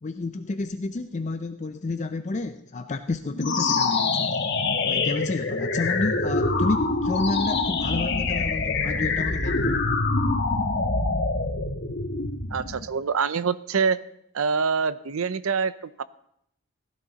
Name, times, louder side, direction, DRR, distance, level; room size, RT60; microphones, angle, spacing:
voice 1, 0.0-4.4 4.8-9.8, left 3 dB, 35° left, 8 dB, 0.4 m, -30 dB
sound 1, 3.3-12.8, left 3 dB, 50° left, 1.4 m, -25 dB
voice 2, 12.5-14.0 14.3-16.0, right 5 dB, 75° right, 16 dB, 0.6 m, -25 dB
16.5 x 11.5 x 4.0 m, 0.74 s
head